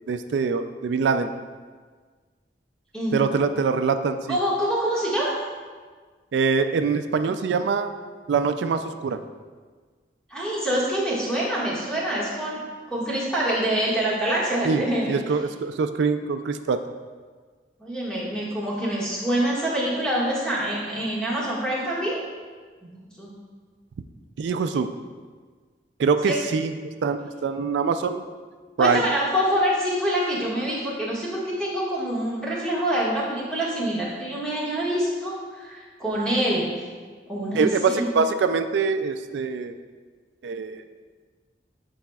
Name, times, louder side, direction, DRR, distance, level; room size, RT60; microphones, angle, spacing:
voice 1, 0.1-1.3 3.1-4.4 6.3-7.9 8.3-9.2 14.6-16.8 24.4-24.9 26.0-28.2 28.8-29.1 37.5-39.7 40.4-40.8, right 5 dB, 85° right, 8 dB, 0.3 m, -24 dB
voice 2, 4.3-5.3 10.3-12.6 12.9-15.1 17.8-22.2 22.8-23.3 26.2-26.3 28.8-36.7 37.3-38.2, right 1 dB, 5° left, -7 dB, 1.7 m, -26 dB
11.5 x 4.8 x 2.3 m, 1.5 s
head